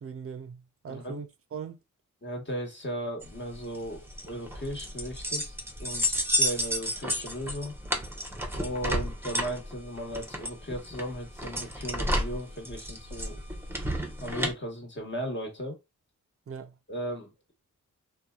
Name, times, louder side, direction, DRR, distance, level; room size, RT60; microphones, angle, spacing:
voice 1, 0.0-1.8 16.5-16.8, right 6 dB, 45° right, 0.5 m, -40 dB
voice 2, 0.9-1.2 2.2-5.5 5.8-7.8 8.5-13.4 14.2-15.8 16.9-17.5, equal, 35° left, 1.3 m, -36 dB
sound 1, 3.2-14.5, equal, 5° right, 0.7 m, -32 dB
2.6 x 2.3 x 2.3 m
cardioid pair, 45°, 32 cm